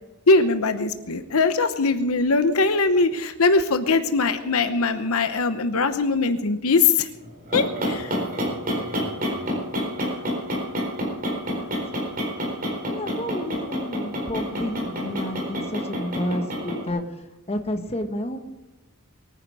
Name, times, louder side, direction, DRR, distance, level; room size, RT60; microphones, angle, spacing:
voice 1, 0.3-7.1 7.5-8.1, left 3 dB, 75° left, 9 dB, 0.9 m, -21 dB
sound 1, 7.2-16.9, equal, 40° right, 4.3 m, -28 dB
voice 2, 10.0-10.4 10.7-11.0 11.6-12.2 12.8-17.0 17.5-18.4, left 1 dB, 25° left, 6 dB, 1.4 m, -31 dB
22.5 x 9.9 x 4.9 m, 1.0 s
head